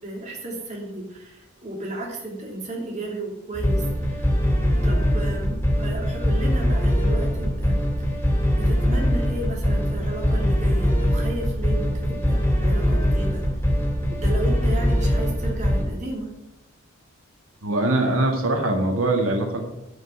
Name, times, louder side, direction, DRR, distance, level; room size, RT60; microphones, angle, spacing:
voice 1, 0.0-4.2 4.8-8.2 8.6-13.4 14.1-16.3, right 1 dB, 35° right, -1 dB, 2.9 m, -33 dB
sound 1, 3.5-15.8, equal, 10° left, 2.7 m, -22 dB
voice 2, 17.6-19.6, right 2 dB, 85° right, 2 dB, 1.8 m, -22 dB
11.0 x 5.5 x 8.4 m, 0.94 s
head